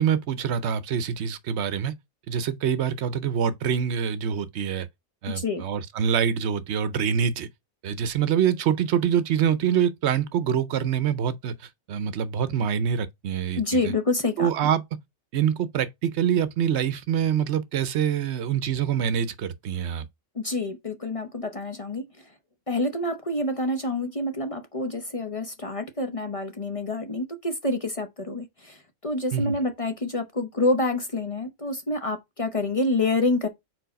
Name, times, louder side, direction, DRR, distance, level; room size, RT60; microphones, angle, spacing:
voice 1, 0.0-1.9 2.3-4.9 5.2-7.5 7.8-13.9 14.4-14.8 15.3-20.1 29.3-29.6, right 8 dB, 70° right, 0.9 m, -25 dB
voice 2, 5.3-5.6 13.6-14.7 20.3-22.2 22.7-33.5, left 2 dB, 35° left, 0.8 m, -27 dB
4.6 x 4.1 x 5.1 m
omnidirectional pair, 1.2 m